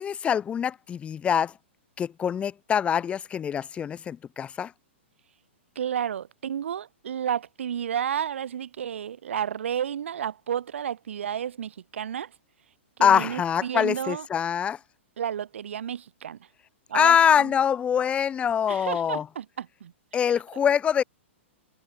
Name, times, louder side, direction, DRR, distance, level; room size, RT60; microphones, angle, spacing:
voice 1, 0.0-1.5 2.0-4.7 13.0-14.8 16.9-19.3 20.1-21.0, left 8 dB, 15° left, 1.0 m, -24 dB
voice 2, 5.8-12.3 13.0-14.3 15.2-16.4 16.9-17.5 18.7-19.9, right 9 dB, 75° right, 1.8 m, -31 dB
hypercardioid pair, 135°, 7 cm